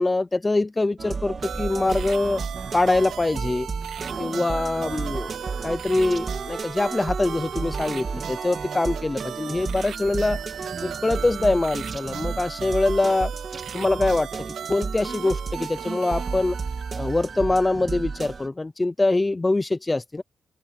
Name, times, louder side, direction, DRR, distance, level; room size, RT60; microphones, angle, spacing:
voice 1, 0.0-2.4 2.7-3.7 4.2-10.4 10.8-13.3 13.7-14.3 14.7-16.6 17.0-20.2, left 2 dB, 15° left, 0.7 m, -24 dB
sound 1, 1.0-18.5, right 4 dB, 35° right, 2.9 m, -33 dB
sound 2, 1.4-17.6, right 9 dB, 75° right, 1.7 m, -37 dB
sound 3, 1.5-9.9 10.1-10.3, right 1 dB, 5° right, 2.3 m, -48 dB
wide cardioid pair, 170°, 0 cm